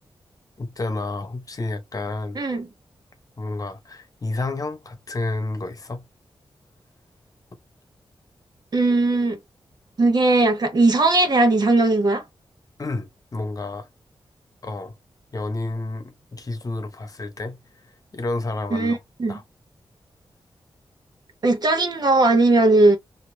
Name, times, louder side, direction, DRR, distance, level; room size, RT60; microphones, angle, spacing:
voice 1, 0.6-2.4 3.4-6.0 12.8-13.9 14.6-14.9 15.3-17.6 18.1-19.0 19.3-19.4, left 2 dB, 40° left, 1.0 m, -30 dB
voice 2, 2.3-2.7 8.7-9.4 10.0-12.2 18.7-19.4 21.4-23.0, right 2 dB, 50° right, 1.1 m, -18 dB
2.9 x 2.8 x 3.2 m
wide cardioid pair, 90°, 9 cm